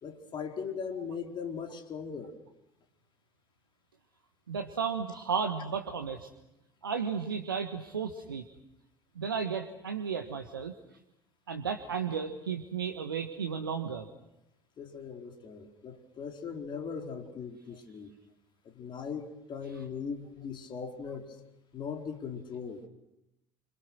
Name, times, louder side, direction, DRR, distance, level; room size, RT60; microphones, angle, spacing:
voice 1, 0.0-2.4 14.8-18.1 18.6-21.3 21.7-22.8, left 6 dB, 45° left, 5 dB, 4.6 m, -39 dB
voice 2, 4.5-6.3 6.8-8.5 9.1-10.7 11.5-14.1, right 6 dB, 85° right, 7 dB, 1.6 m, -33 dB
29.5 x 26.5 x 6.3 m, 0.85 s
hypercardioid pair, 65°, 11 cm